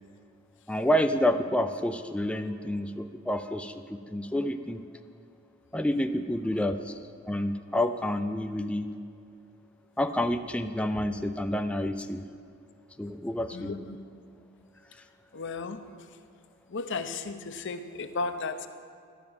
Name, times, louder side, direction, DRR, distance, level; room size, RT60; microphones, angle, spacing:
voice 1, 0.7-4.8 5.7-7.0 7.3-8.9 10.0-12.2 13.0-13.7, left 1 dB, 5° left, 8 dB, 0.4 m, -29 dB
voice 2, 13.5-14.0 15.3-15.8 16.7-18.7, left 4 dB, 55° left, 9 dB, 0.7 m, -34 dB
13.0 x 5.9 x 8.7 m, 2.4 s
head